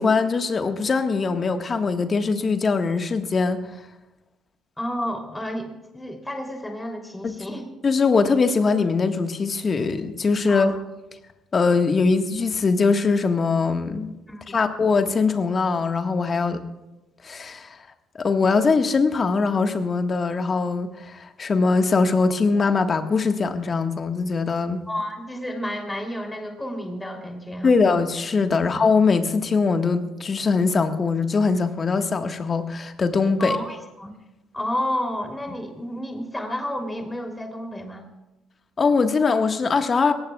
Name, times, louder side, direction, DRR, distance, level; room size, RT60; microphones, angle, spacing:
voice 1, 0.0-3.6 7.2-7.3 7.8-10.7 11.5-14.1 14.5-16.6 17.2-17.8 18.2-24.8 27.6-33.6 38.8-40.1, left 4 dB, 40° left, 7 dB, 1.5 m, -21 dB
voice 2, 4.8-7.7 10.5-10.8 14.3-14.6 24.9-27.8 33.4-34.1 34.5-38.0, left 1 dB, 10° left, 3 dB, 3.1 m, -31 dB
22.5 x 18.5 x 2.4 m, 1.0 s
hypercardioid pair, 50°, 0 cm